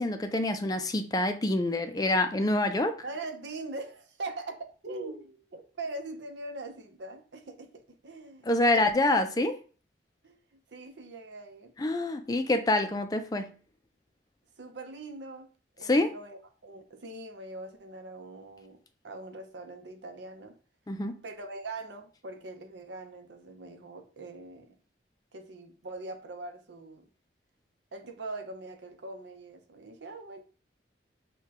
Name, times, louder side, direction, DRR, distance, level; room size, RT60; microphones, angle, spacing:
voice 1, 0.0-3.0 8.5-9.6 11.8-13.5 15.8-16.1 20.9-21.2, left 2 dB, 20° left, 0.4 m, -26 dB
voice 2, 3.0-8.8 10.2-11.7 12.8-13.0 14.6-15.5 15.8-20.6 21.2-24.8 25.3-27.1 27.9-30.4, right 2 dB, 80° right, 0.7 m, -42 dB
6.5 x 2.3 x 2.9 m
head